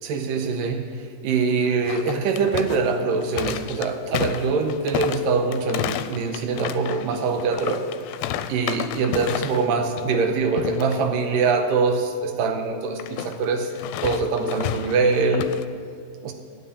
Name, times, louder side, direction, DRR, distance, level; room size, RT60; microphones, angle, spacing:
voice 1, 0.0-7.9 8.5-13.7 14.0-15.5 16.2-16.3, right 4 dB, 75° right, 6 dB, 2.3 m, -23 dB
sound 1, 1.8-9.7 10.0-10.3 10.6-11.0 13.0-15.7, left 11 dB, 85° left, 2.3 m, -31 dB
9.9 x 7.6 x 8.6 m, 2.3 s
omnidirectional pair, 4.3 m